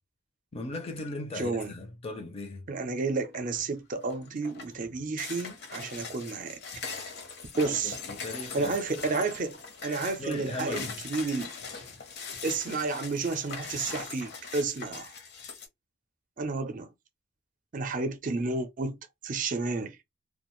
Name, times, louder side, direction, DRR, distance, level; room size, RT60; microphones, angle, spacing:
voice 1, 0.5-2.6 7.7-8.8 10.2-10.9, left 2 dB, 30° left, 0.5 m, -38 dB
voice 2, 1.3-1.7 2.7-6.6 7.6-8.0 8.5-11.5 12.4-15.1 16.4-16.9 17.7-19.0 19.2-20.0, right 3 dB, 40° right, 0.5 m, -31 dB
sound 1, 3.2-3.6 4.0-15.7, left 5 dB, 55° left, 0.8 m, -41 dB
2.4 x 2.2 x 3.0 m
head